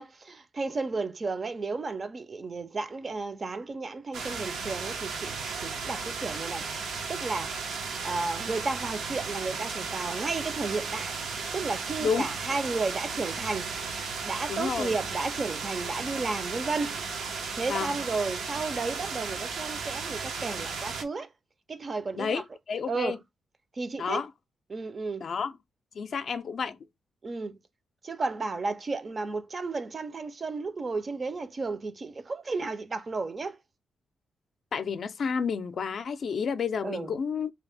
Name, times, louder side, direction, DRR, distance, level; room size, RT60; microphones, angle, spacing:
voice 1, 0.0-11.1 11.5-13.7 14.2-17.0 17.5-21.3 21.7-22.4 22.9-23.2 23.7-24.2 24.7-25.3 27.2-27.6 28.0-33.6 36.8-37.1, right 3 dB, 35° right, 0.5 m, -33 dB
sound 1, 4.1-21.0, right 5 dB, 90° right, 0.7 m, -35 dB
voice 2, 14.5-14.9 17.7-17.9 22.1-23.2 24.0-24.3 25.2-25.5 25.9-26.8 34.7-37.5, left 6 dB, 55° left, 0.4 m, -30 dB
2.7 x 2.5 x 3.3 m
cardioid pair, 115°, 0 cm